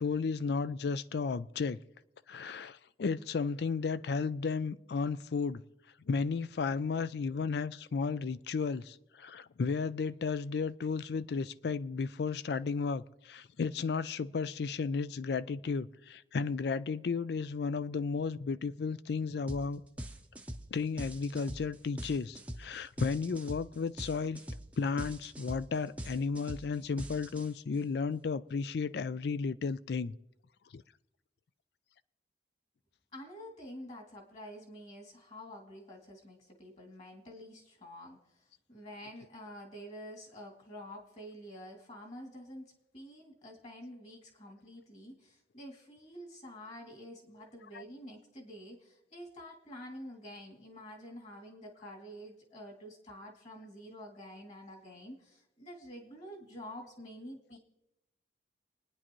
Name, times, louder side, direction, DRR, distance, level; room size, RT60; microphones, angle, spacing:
voice 1, 0.0-1.8 2.3-5.6 6.1-19.8 20.7-24.4 24.8-30.1 30.7-30.8 47.7-47.8, left 5 dB, 60° left, 0.4 m, -33 dB
sound 1, 19.5-19.7 20.0-27.8, equal, 10° right, 0.7 m, -43 dB
voice 2, 33.1-57.6, equal, 40° left, 2.5 m, -48 dB
27.5 x 9.8 x 3.1 m
head